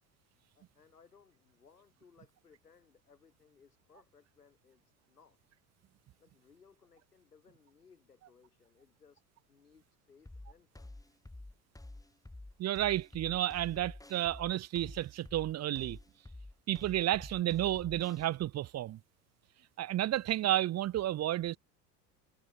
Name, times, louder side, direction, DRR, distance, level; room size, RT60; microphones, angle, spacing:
voice 1, 0.6-4.8 5.1-5.4 6.2-9.2 9.5-10.9, left 6 dB, 85° left, 5.1 m, -64 dB
sound 1, 10.3-18.3, left 2 dB, 5° left, 5.2 m, -49 dB
voice 2, 12.6-16.0 16.7-19.0 19.8-21.6, right 13 dB, 35° right, 1.0 m, -31 dB
figure-of-eight pair, 70°, 45 cm